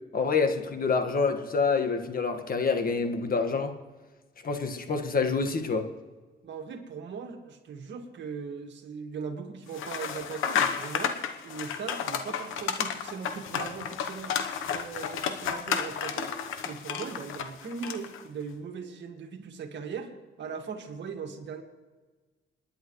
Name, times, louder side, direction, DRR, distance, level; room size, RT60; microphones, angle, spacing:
voice 1, 0.1-3.8 4.4-5.9, left 4 dB, 45° left, 6 dB, 1.7 m, -27 dB
voice 2, 6.4-11.2 11.4-14.4 14.7-16.3 16.6-20.1 20.4-21.6, right 6 dB, 65° right, 4 dB, 2.0 m, -39 dB
sound 1, 9.7-18.2, left 8 dB, 85° left, 1.1 m, -32 dB
27.5 x 10.5 x 3.2 m, 1.3 s
cardioid pair, 90°, 20 cm